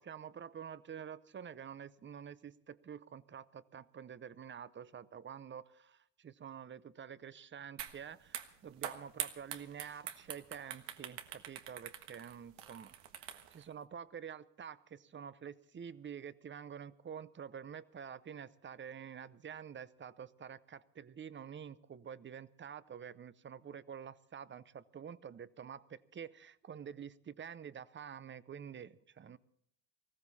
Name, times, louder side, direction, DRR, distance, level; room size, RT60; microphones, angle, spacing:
voice 1, 0.0-29.4, right 8 dB, 30° right, 17 dB, 0.7 m, -48 dB
sound 1, 7.8-8.0 8.3-13.6, right 10 dB, 85° right, 1.5 m, -44 dB
19.5 x 15.0 x 4.1 m, 0.71 s
cardioid pair, 105°, 42 cm